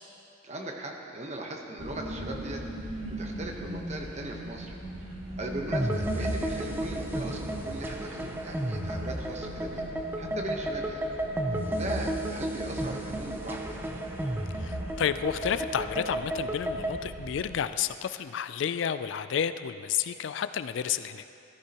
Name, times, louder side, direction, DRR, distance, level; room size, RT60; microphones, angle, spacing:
voice 1, 0.4-9.8 10.2-11.0 11.6-13.6, right 1 dB, 35° right, 1 dB, 1.0 m, -39 dB
sound 1, 1.8-17.6, equal, 80° right, 1.7 m, -40 dB
sound 2, 5.7-17.0, right 1 dB, 10° right, 0.6 m, -33 dB
voice 2, 14.5-21.2, left 8 dB, 65° left, 12 dB, 0.3 m, -31 dB
15.0 x 12.5 x 2.9 m, 2.6 s
head